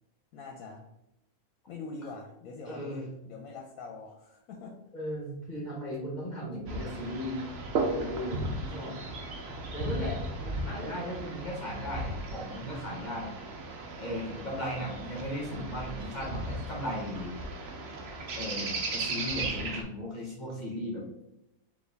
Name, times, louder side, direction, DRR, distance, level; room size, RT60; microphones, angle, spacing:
voice 1, 0.3-0.8 1.7-4.8, left 3 dB, 75° left, 2 dB, 1.0 m, -44 dB
voice 2, 2.7-3.1 4.9-7.4 7.9-9.0 9.7-13.3 14.0-17.3 18.3-21.0, equal, 35° left, -4 dB, 0.8 m, -37 dB
sound 1, 6.7-19.8, right 2 dB, 55° right, 0.8 m, -36 dB
4.4 x 2.9 x 3.3 m, 0.89 s
omnidirectional pair, 1.5 m